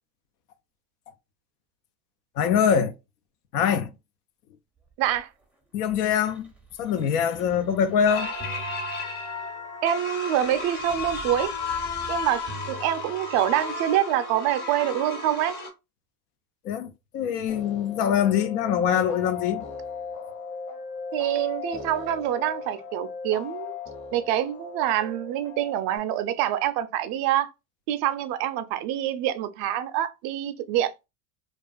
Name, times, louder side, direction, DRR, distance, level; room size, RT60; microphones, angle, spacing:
voice 1, 2.4-2.9 3.5-3.9 5.7-6.5 6.8-8.3 16.6-19.7, left 8 dB, 75° left, 0.6 m, -23 dB
sound 1, 4.8-9.7 10.4-13.7 14.5-14.6, right 3 dB, 5° right, 0.5 m, -46 dB
voice 2, 5.0-5.3 9.8-11.5 12.1-15.6 21.1-23.7 24.1-27.5 27.9-30.9, right 12 dB, 50° right, 0.5 m, -26 dB
sound 2, 8.1-15.7, left 3 dB, 55° left, 1.2 m, -33 dB
sound 3, 17.5-26.0, left 6 dB, 35° left, 0.9 m, -38 dB
2.3 x 2.3 x 2.3 m
hypercardioid pair, 80°, 47 cm